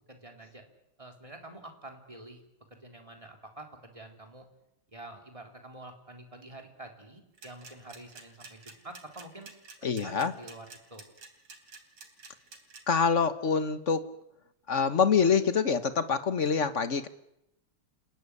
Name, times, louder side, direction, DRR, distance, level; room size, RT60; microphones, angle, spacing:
voice 1, 0.1-0.7 1.0-2.4 2.7-4.5 4.9-9.5 9.8-11.1, right 2 dB, 15° right, 3 dB, 3.7 m, -47 dB
sound 1, 7.3-12.8, right 4 dB, 85° right, 4.2 m, -48 dB
voice 2, 9.8-10.3 12.9-14.0 14.7-17.1, left 6 dB, 40° left, 11 dB, 1.4 m, -25 dB
29.0 x 16.5 x 9.9 m, 0.82 s
omnidirectional pair, 2.4 m